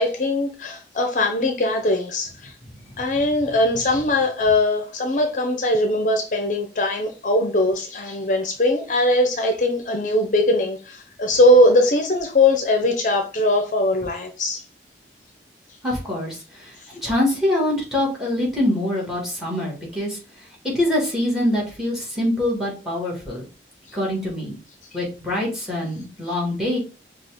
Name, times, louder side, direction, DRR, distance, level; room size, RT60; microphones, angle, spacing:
voice 1, 0.0-2.5 3.0-14.6 23.9-24.0, left 1 dB, 45° left, 0.6 m, -20 dB
voice 2, 15.8-20.2 20.6-23.4 23.9-24.6 24.9-26.8, left 1 dB, ahead, 1.6 m, -24 dB
5.4 x 2.4 x 3.4 m
head